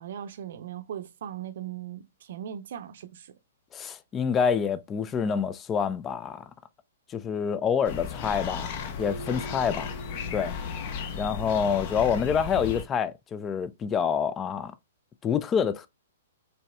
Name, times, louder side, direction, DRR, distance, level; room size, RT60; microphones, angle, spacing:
voice 1, 0.0-3.3, right 10 dB, 55° right, 0.6 m, -39 dB
voice 2, 3.7-6.5 7.1-9.9 10.3-10.5 11.1-14.7 15.2-15.9, left 7 dB, 20° left, 0.4 m, -27 dB
sound 1, 7.8-12.8, left 6 dB, 40° left, 0.8 m, -35 dB
Keyboard (musical), 9.0-11.8, right 3 dB, 75° left, 1.5 m, -45 dB
6.8 x 3.3 x 2.2 m
figure-of-eight pair, 115°, 0 cm